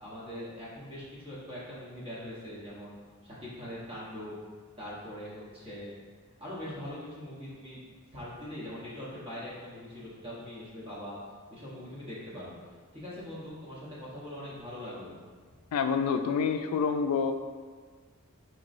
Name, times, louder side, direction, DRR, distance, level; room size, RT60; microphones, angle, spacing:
voice 1, 0.0-3.0 3.2-4.4 4.8-5.9 6.4-11.1 11.5-12.5 12.9-15.1 15.5-15.6, left 1 dB, 25° right, -8 dB, 1.0 m, -42 dB
voice 2, 15.7-17.3, left 6 dB, 80° left, 9 dB, 0.3 m, -27 dB
4.5 x 3.0 x 2.5 m, 1.5 s
head